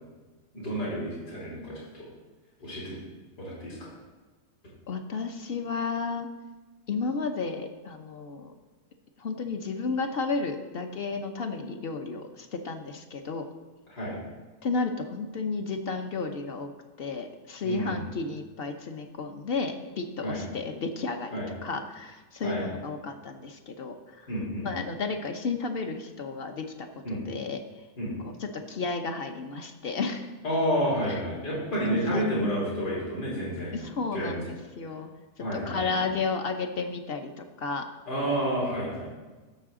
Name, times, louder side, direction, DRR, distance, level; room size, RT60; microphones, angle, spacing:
voice 1, 0.5-2.1 2.6-3.0 3.4-3.8 13.9-14.2 17.6-18.0 20.2-20.4 21.3-21.5 22.4-22.6 24.3-24.7 27.0-27.2 28.0-28.1 30.4-33.8 34.1-34.4 35.4-36.0 38.1-39.1, equal, 75° left, -7 dB, 4.0 m, -30 dB
voice 2, 4.9-6.3 6.9-8.5 9.2-13.4 14.6-16.7 17.0-24.0 24.6-27.6 28.5-30.3 31.1-31.2 31.8-32.2 33.7-35.1 35.4-37.9, left 4 dB, 50° left, 6 dB, 0.7 m, -32 dB
15.5 x 6.9 x 3.7 m, 1.3 s
omnidirectional pair, 1.8 m